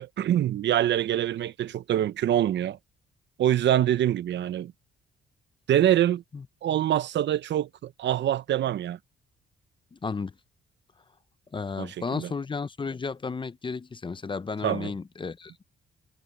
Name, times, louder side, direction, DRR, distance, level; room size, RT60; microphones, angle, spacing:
voice 1, 0.0-2.8 3.4-4.7 5.7-6.2 6.6-9.0 11.8-12.3 14.6-14.9, right 11 dB, 65° right, 0.8 m, -25 dB
voice 2, 9.9-10.3 11.5-15.6, left 4 dB, 25° left, 0.7 m, -33 dB
cardioid pair, 90°, 20 cm